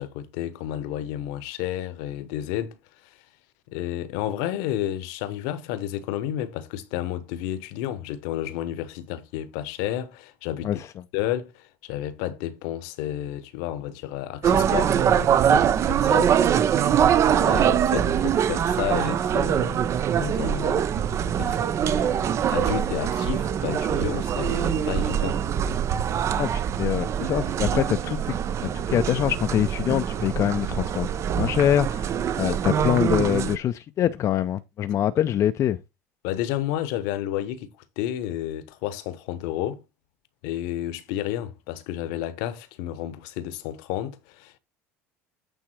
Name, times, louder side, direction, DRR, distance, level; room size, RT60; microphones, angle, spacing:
voice 1, 0.0-2.8 3.7-10.8 11.1-16.8 17.3-19.9 20.1-20.9 21.1-22.2 22.5-25.4 32.4-32.6 36.2-39.8 40.4-44.6, left 12 dB, 70° left, 1.0 m, -31 dB
sound 1, 14.4-33.6, right 9 dB, 45° right, 0.7 m, -23 dB
voice 2, 26.4-28.3 28.6-32.1 32.4-35.8, left 11 dB, 45° left, 0.5 m, -24 dB
8.9 x 3.6 x 4.5 m
hypercardioid pair, 70°, 7 cm